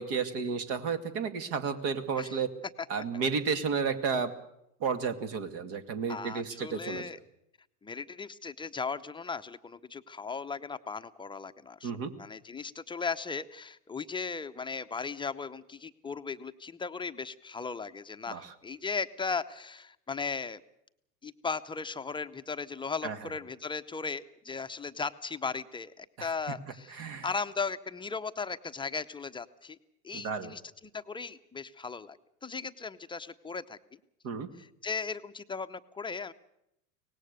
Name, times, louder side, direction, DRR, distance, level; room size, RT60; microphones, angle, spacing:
voice 1, 0.0-2.5 2.9-4.3 4.8-7.1 11.8-12.1 18.3-18.5 23.0-23.2 26.2-26.3 26.9-27.3 30.1-30.5 34.2-34.5, right 5 dB, 50° right, 9 dB, 2.4 m, -32 dB
voice 2, 6.1-7.2 7.8-11.9 12.2-20.6 21.2-29.8 30.0-30.6 30.9-33.8 34.6-36.3, left 5 dB, 10° left, 10 dB, 0.7 m, -37 dB
24.0 x 18.5 x 6.8 m, 0.82 s
hypercardioid pair, 90°, 46 cm